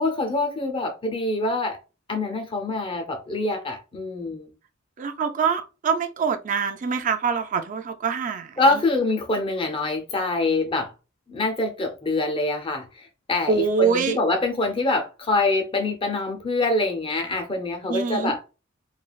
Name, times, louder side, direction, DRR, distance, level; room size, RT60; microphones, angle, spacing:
voice 1, 0.0-1.8 2.1-4.5 8.6-10.9 11.3-18.4, left 2 dB, 25° left, 0.5 m, -25 dB
voice 2, 5.0-8.8 13.5-14.2 17.9-18.3, right 5 dB, 40° right, 0.4 m, -25 dB
3.2 x 2.3 x 2.3 m
head